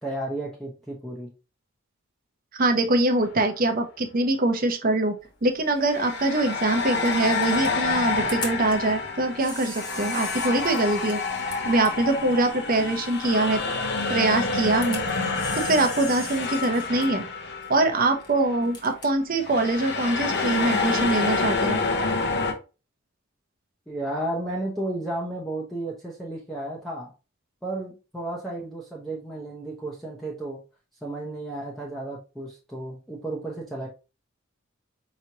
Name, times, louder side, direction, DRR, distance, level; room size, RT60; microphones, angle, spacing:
voice 1, 0.0-1.3 23.9-27.1 27.6-30.6 31.0-33.9, right 1 dB, ahead, -4 dB, 0.7 m, -33 dB
voice 2, 2.5-11.2 11.6-13.6 14.1-15.0 15.6-17.3 17.7-21.8, right 2 dB, 45° right, 6 dB, 0.7 m, -23 dB
sound 1, 3.2-3.4 5.8-18.2 18.5-18.7 19.4-22.5, left 4 dB, 55° left, 0.8 m, -28 dB
Camera, 5.2-20.7, left 2 dB, 20° left, 1.0 m, -42 dB
4.8 x 3.0 x 2.8 m, 0.31 s
head